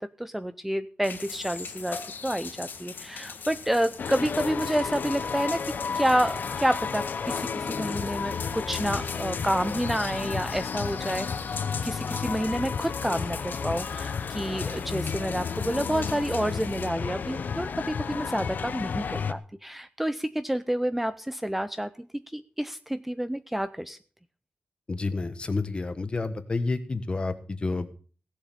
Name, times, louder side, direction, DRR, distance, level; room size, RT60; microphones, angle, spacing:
voice 1, 0.0-22.1 22.3-24.0, right 1 dB, 5° right, 12 dB, 0.5 m, -29 dB
sound 1, 1.0-16.9, left 5 dB, 85° left, 1.7 m, -41 dB
sound 2, 4.0-19.3, left 6 dB, 65° left, 0.8 m, -32 dB
voice 2, 24.9-27.9, left 3 dB, 30° left, 11 dB, 1.3 m, -29 dB
17.0 x 7.4 x 6.8 m, 0.41 s
wide cardioid pair, 170°, 3 cm